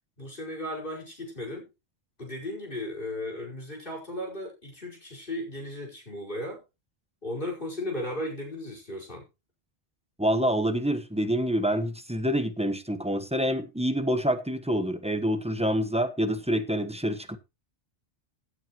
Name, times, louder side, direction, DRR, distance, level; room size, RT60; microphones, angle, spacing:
voice 1, 0.2-1.7 2.2-6.6 7.2-9.2, left 1 dB, 50° left, 5.1 m, -35 dB
voice 2, 10.2-17.4, equal, 5° right, 1.1 m, -27 dB
16.5 x 8.8 x 3.1 m
omnidirectional pair, 1.2 m